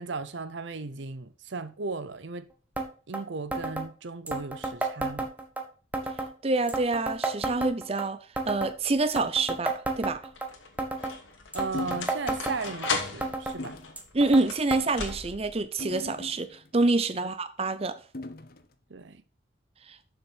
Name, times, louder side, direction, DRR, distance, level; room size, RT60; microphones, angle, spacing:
voice 1, 0.0-2.5 3.1-5.3 11.5-13.8 17.2-17.3 18.9-19.2, right 4 dB, 70° right, 0.7 m, -36 dB
sound 1, 2.8-2.9 3.1-3.2 3.5-3.9 4.3-5.6 5.9-6.3 6.7-8.1 8.4-8.7 9.1-10.5 10.8-11.2 11.5-12.9 13.2-13.6 14.0-14.4 14.7-14.8 15.1-15.2 16.0-16.1 16.8-16.9, right 2 dB, 10° right, 1.2 m, -31 dB
voice 2, 6.4-8.2 8.5-10.2 14.1-17.9, right 3 dB, 30° right, 0.6 m, -27 dB
sound 2, 8.8-9.3 10.1-15.6, left 4 dB, 85° left, 2.3 m, -37 dB
sound 3, 11.7-12.2 12.6-12.8 13.6-14.0 14.7-15.0 15.8-16.7 18.1-18.7, left 2 dB, 50° left, 0.9 m, -39 dB
7.2 x 6.6 x 5.7 m
head